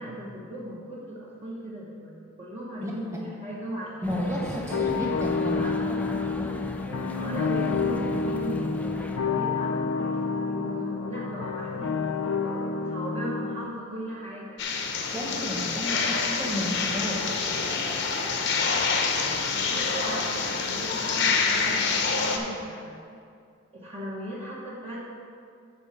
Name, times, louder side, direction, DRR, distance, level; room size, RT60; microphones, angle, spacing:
voice 1, 0.0-2.1 2.4-4.2 4.6-5.7 7.1-12.0 12.4-14.6 17.5-17.9 19.4-23.0 23.7-25.0, equal, 30° right, -6 dB, 1.1 m, -38 dB
sound 1, 4.0-9.2, left 1 dB, 5° left, 0.4 m, -38 dB
voice 2, 4.0-6.0 6.4-6.5 15.1-17.2 19.2-19.7, equal, 15° right, -3 dB, 1.3 m, -32 dB
sound 2, 4.7-13.7, left 4 dB, 80° left, 0.5 m, -29 dB
sound 3, 14.6-22.4, left 5 dB, 55° left, 0.8 m, -27 dB
9.9 x 4.6 x 5.8 m, 2.3 s
head